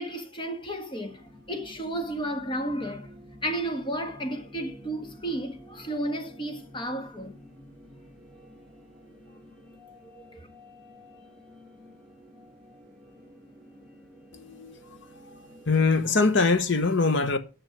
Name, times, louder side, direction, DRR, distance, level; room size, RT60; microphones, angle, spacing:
voice 1, 0.0-3.1 3.4-7.4 10.0-10.5, right 1 dB, 25° left, 1.4 m, -33 dB
sound 1, 1.0-16.2, left 1 dB, 5° left, 2.4 m, -50 dB
voice 2, 14.3-14.8 15.7-17.4, left 4 dB, 60° left, 1.1 m, -23 dB
9.3 x 6.6 x 6.0 m
head